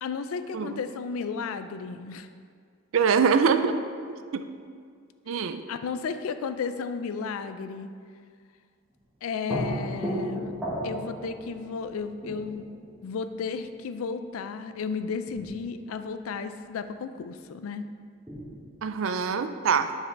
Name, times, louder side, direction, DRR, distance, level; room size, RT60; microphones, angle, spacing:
voice 1, 0.0-2.3 5.7-7.9 9.2-10.5 10.8-12.7 13.0-17.9, left 5 dB, 90° left, 10 dB, 0.4 m, -33 dB
voice 2, 2.9-3.8 4.1-4.4 5.3-5.6 18.8-19.9, right 6 dB, 75° right, 10 dB, 0.4 m, -24 dB
sound 1, 8.9-9.0 9.5-14.0 14.8-14.9 15.3-16.0 18.3-19.0, equal, 5° right, 1.4 m, -35 dB
10.0 x 4.7 x 3.4 m, 2.1 s
head